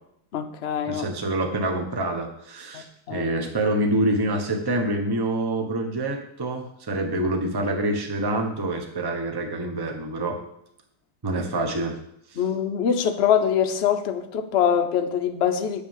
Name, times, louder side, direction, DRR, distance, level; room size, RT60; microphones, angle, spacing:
voice 1, 0.3-1.1 2.7-3.3 12.4-15.8, left 8 dB, 75° left, 6 dB, 0.6 m, -24 dB
voice 2, 0.9-10.4 11.2-12.0 12.3-12.4, right 1 dB, 15° right, 3 dB, 0.8 m, -26 dB
8.6 x 5.9 x 7.3 m, 0.75 s
omnidirectional pair, 2.2 m